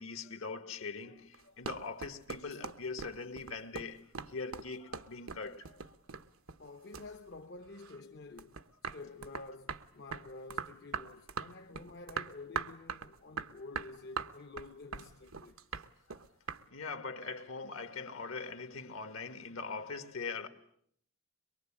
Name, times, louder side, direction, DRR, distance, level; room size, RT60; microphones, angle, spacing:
voice 1, 0.0-6.0 16.1-16.3 16.7-20.5, left 4 dB, 70° left, 1.9 m, -42 dB
sound 1, 1.3-6.7 6.9-8.0 8.4-16.6, right 5 dB, 85° right, 1.1 m, -41 dB
voice 2, 6.6-8.7 8.9-15.6, left 3 dB, 55° left, 1.0 m, -49 dB
23.5 x 23.5 x 8.8 m
head